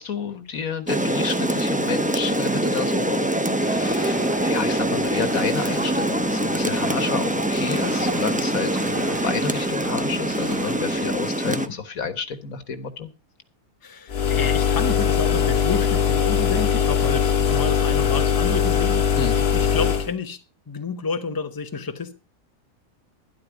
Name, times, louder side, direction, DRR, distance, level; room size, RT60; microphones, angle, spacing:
voice 1, 0.0-13.1 19.2-19.4, left 6 dB, 75° left, 1.8 m, -30 dB
Rain, 0.9-11.7, right 1 dB, 10° right, 0.6 m, -24 dB
sound 1, 3.6-11.2, right 1 dB, 70° right, 3.7 m, -39 dB
voice 2, 11.5-11.8 13.8-19.1 19.5-20.4 20.7-22.1, left 4 dB, 15° left, 1.0 m, -29 dB
sound 2, 14.1-20.1, left 7 dB, 50° left, 1.2 m, -21 dB
12.0 x 11.0 x 4.9 m
omnidirectional pair, 1.5 m